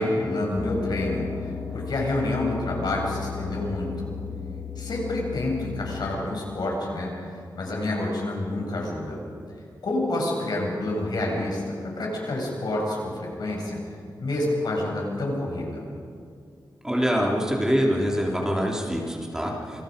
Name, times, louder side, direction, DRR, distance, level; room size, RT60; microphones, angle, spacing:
voice 1, 0.0-4.1 4.8-7.1 7.5-9.2 9.8-13.8 14.2-15.8, left 1 dB, 70° left, -2 dB, 7.4 m, -28 dB
sound 1, 0.6-6.1, left 6 dB, 45° left, 2.7 m, -35 dB
voice 2, 16.8-19.8, equal, 10° right, -1 dB, 3.2 m, -24 dB
27.5 x 26.0 x 5.3 m, 2.4 s
wide cardioid pair, 125°, 7 cm